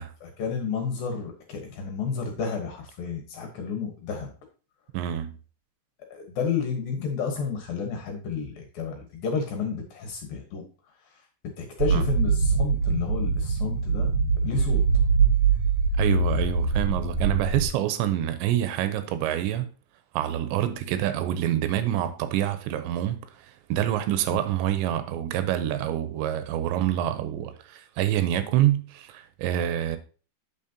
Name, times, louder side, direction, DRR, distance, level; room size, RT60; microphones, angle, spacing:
voice 1, 0.2-4.3 6.1-10.6 11.0-14.1 14.4-14.8, left 5 dB, 65° left, 2.6 m, -31 dB
voice 2, 4.9-5.3 11.9-12.0 16.0-19.7 20.1-30.0, right 12 dB, 85° right, 3.0 m, -26 dB
sound 1, 11.8-17.7, right 5 dB, 65° right, 1.7 m, -23 dB
8.6 x 7.3 x 2.8 m
omnidirectional pair, 5.2 m